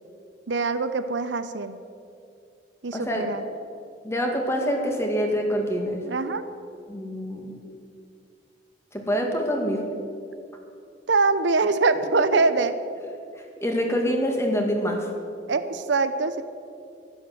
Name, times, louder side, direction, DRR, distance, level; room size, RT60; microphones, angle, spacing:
voice 1, 0.5-1.8 2.8-3.4 6.0-6.4 11.1-12.8 15.5-16.4, right 3 dB, 80° right, 11 dB, 0.7 m, -23 dB
voice 2, 2.9-3.3 4.0-6.0 6.9-7.5 8.9-9.8 12.1-12.3 13.6-15.1, equal, 15° left, 1 dB, 2.1 m, -25 dB
12.0 x 11.5 x 7.9 m, 2.5 s
head